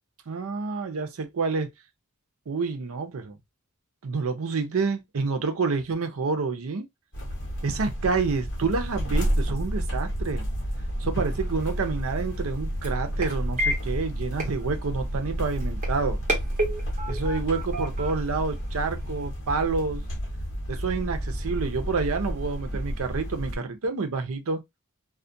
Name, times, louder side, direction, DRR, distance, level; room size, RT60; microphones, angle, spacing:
voice 1, 0.3-1.7 2.5-3.4 4.0-6.9 7.6-10.5 11.0-16.2 17.1-20.0 20.7-24.6, right 4 dB, 70° right, 0.6 m, -28 dB
sound 1, 7.1-23.6, equal, 60° left, 0.9 m, -30 dB
sound 2, 11.4-19.3, equal, 35° right, 1.1 m, -34 dB
2.4 x 2.1 x 2.6 m
head